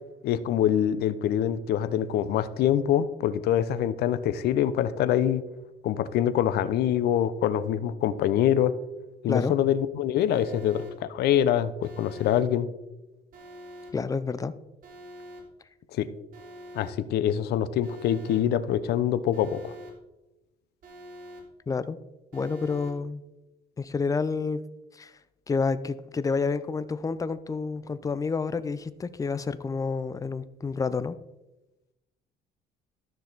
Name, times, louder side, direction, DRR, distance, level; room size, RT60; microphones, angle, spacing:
voice 1, 0.2-5.4 5.8-8.7 9.2-12.7 16.0-16.1 16.7-19.7, left 10 dB, 75° left, 14 dB, 0.7 m, -25 dB
Alarm, 10.3-10.9 11.8-12.4 13.3-13.9 14.8-15.4 16.3-16.9 17.8-18.4 19.3-19.9 20.8-21.4 22.3-22.9, equal, 55° right, 3.2 m, -45 dB
voice 2, 13.9-14.5 21.7-22.0 22.3-23.2 23.8-24.6 24.9-25.1 25.5-31.2, left 4 dB, 20° left, 14 dB, 0.5 m, -29 dB
12.5 x 6.4 x 4.0 m, 1.0 s
cardioid pair, 110°, 17 cm